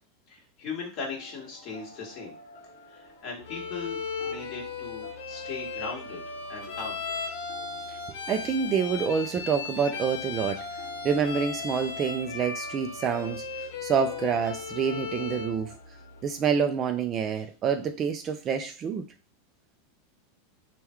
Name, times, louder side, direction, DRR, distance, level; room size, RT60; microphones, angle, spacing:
voice 1, 0.3-2.4 2.9-6.2 6.5-7.0 17.3-17.4, left 4 dB, 35° left, -2 dB, 1.6 m, -38 dB
sound 1, 1.1-16.5, left 2 dB, 85° left, 0.8 m, -49 dB
Bowed string instrument, 3.5-15.6, left 5 dB, 70° left, 1.2 m, -36 dB
voice 2, 8.3-10.6 11.0-13.4 13.8-15.7 16.2-19.0, right 6 dB, 25° right, 6 dB, 0.3 m, -27 dB
3.5 x 2.2 x 4.4 m, 0.34 s
supercardioid pair, 155°, 0 cm